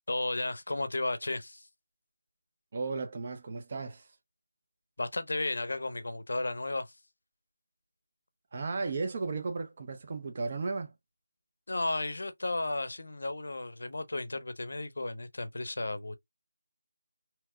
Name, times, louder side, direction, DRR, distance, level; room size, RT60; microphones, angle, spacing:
voice 1, 0.1-1.7 5.0-6.9 11.7-16.2, left 2 dB, 55° left, 0.6 m, -34 dB
voice 2, 2.7-4.1 8.5-10.9, right 4 dB, 25° right, 0.4 m, -35 dB
2.9 x 2.0 x 3.4 m
figure-of-eight pair, 180°, 0 cm